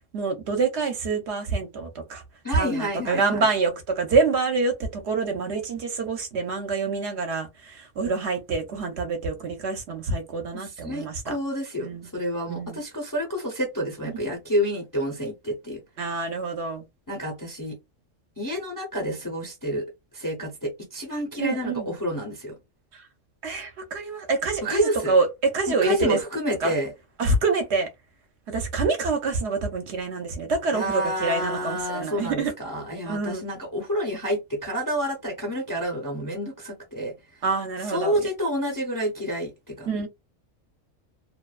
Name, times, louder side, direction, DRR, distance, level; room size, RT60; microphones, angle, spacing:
voice 1, 0.1-2.2 2.5-11.4 11.8-12.1 12.5-12.8 14.1-14.2 16.0-16.8 21.4-21.9 23.4-26.2 26.6-26.7 27.2-27.9 28.5-32.5 33.1-33.5 37.4-38.1 39.9-40.1, right 4 dB, 65° right, 0.9 m, -26 dB
voice 2, 2.4-3.5 10.5-15.8 17.1-17.8 18.4-19.9 20.1-22.5 24.6-25.1 25.7-26.9 30.7-37.1 37.8-39.9, equal, 25° left, 0.5 m, -29 dB
2.4 x 2.2 x 2.3 m
omnidirectional pair, 1.3 m